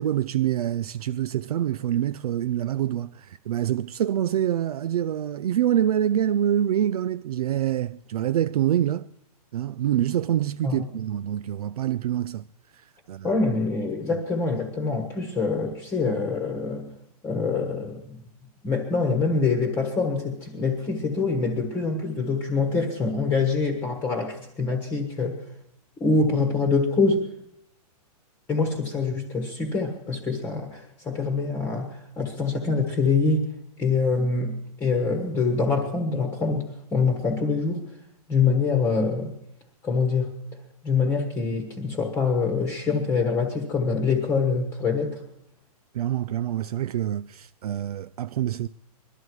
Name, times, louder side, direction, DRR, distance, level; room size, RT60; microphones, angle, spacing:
voice 1, 0.0-9.1 9.5-12.4 12.7-13.4 45.9-48.7, right 11 dB, 70° right, 0.5 m, -26 dB
voice 2, 13.2-16.9 17.2-18.2 18.6-25.4 26.0-27.3 28.5-33.5 33.8-34.5 34.8-37.8 38.3-39.3 39.8-40.3 40.8-45.2, left 4 dB, 10° left, 1.3 m, -25 dB
21.5 x 12.5 x 4.7 m
hypercardioid pair, 165°, 20 cm